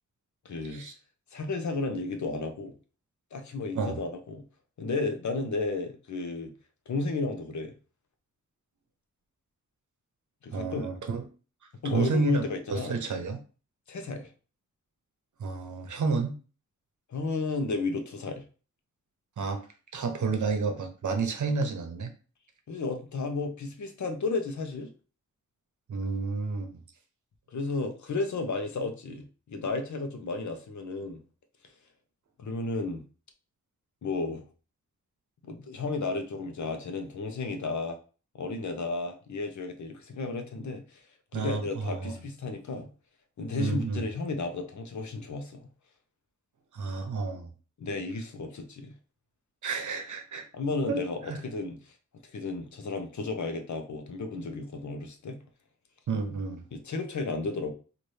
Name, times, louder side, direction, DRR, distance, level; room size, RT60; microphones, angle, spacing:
voice 1, 0.4-0.8 1.3-2.7 3.3-4.4 4.8-6.5 6.9-7.7 10.4-10.9 11.8-13.0 13.9-14.3 17.1-18.4 22.7-24.9 27.5-31.2 32.4-33.0 34.0-34.5 35.4-38.0 38.3-41.0 41.3-42.9 43.4-45.6 47.8-48.9 50.5-51.9 52.3-55.4 56.7-57.7, left 3 dB, 65° left, 0.8 m, -33 dB
voice 2, 10.5-11.2 11.8-12.4 12.7-13.4 15.4-16.4 19.4-19.6 19.9-22.1 25.9-26.8 41.3-42.2 43.6-44.1 46.7-47.5 49.6-50.4 50.9-51.0 51.3-51.4 56.1-56.6, right 4 dB, 70° right, 0.8 m, -30 dB
4.0 x 2.6 x 3.2 m
wide cardioid pair, 90°, 31 cm